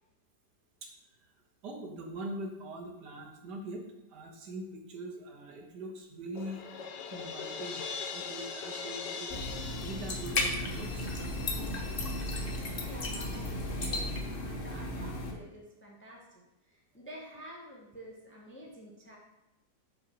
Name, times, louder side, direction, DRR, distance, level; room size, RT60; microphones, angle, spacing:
voice 1, 1.6-3.8 4.1-6.6 7.1-7.8 8.1-9.3 9.8-11.1, right 1 dB, 80° right, 0 dB, 1.7 m, -42 dB
Crash cymbal, 6.4-11.3, left 5 dB, 85° left, 1.3 m, -41 dB
sound 1, 9.3-15.3, left 1 dB, 45° left, 0.8 m, -34 dB
voice 2, 12.8-19.2, equal, 10° left, -2 dB, 0.7 m, -49 dB
5.3 x 4.1 x 6.0 m, 0.95 s
omnidirectional pair, 1.8 m